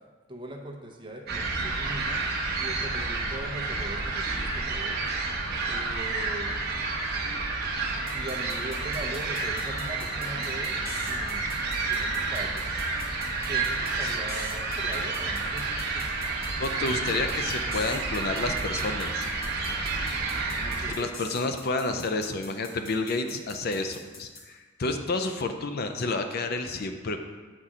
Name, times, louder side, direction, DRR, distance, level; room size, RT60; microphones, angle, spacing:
voice 1, 0.3-2.2 2.6-5.0 5.7-6.7 8.1-12.7 13.5-16.1 20.6-21.1, right 1 dB, 25° right, 1 dB, 0.8 m, -40 dB
sound 1, 1.3-20.9, right 3 dB, 50° right, 0.9 m, -30 dB
sound 2, 8.1-24.4, left 2 dB, 80° left, 1.3 m, -45 dB
voice 2, 16.6-19.3 21.0-27.2, left 3 dB, 50° left, 7 dB, 0.5 m, -30 dB
7.5 x 4.2 x 4.9 m, 1.4 s
head